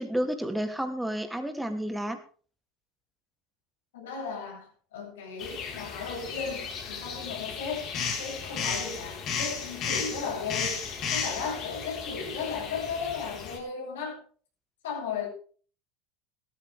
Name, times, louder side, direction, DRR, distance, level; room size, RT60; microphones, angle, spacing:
voice 1, 0.0-2.2, equal, 5° right, 5 dB, 2.9 m, -31 dB
voice 2, 3.9-7.9 8.2-14.2 14.8-15.3, left 5 dB, 75° left, -1 dB, 8.0 m, -35 dB
sound 1, 5.4-13.6, left 6 dB, 50° left, 4.6 m, -34 dB
17.0 x 13.5 x 3.6 m, 0.42 s
hypercardioid pair, 80°, 0 cm